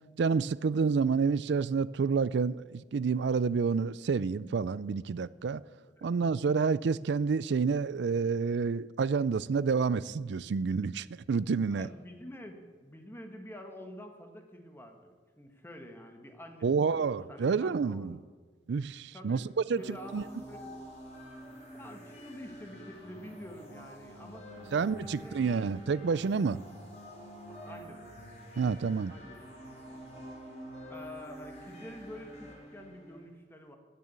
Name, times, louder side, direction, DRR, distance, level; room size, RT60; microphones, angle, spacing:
voice 1, 0.2-5.6 6.0-11.9 16.6-18.2 18.7-19.4 19.7-20.2 24.7-26.6 28.6-29.1, right 5 dB, 65° right, 0.4 m, -29 dB
voice 2, 11.7-18.2 19.1-19.5 19.8-20.8 21.7-25.7 27.6-28.0 29.1-29.4 30.9-33.8, equal, 15° left, 1.3 m, -48 dB
sound 1, 19.7-33.2, equal, 40° left, 3.9 m, -48 dB
15.0 x 6.9 x 8.2 m
head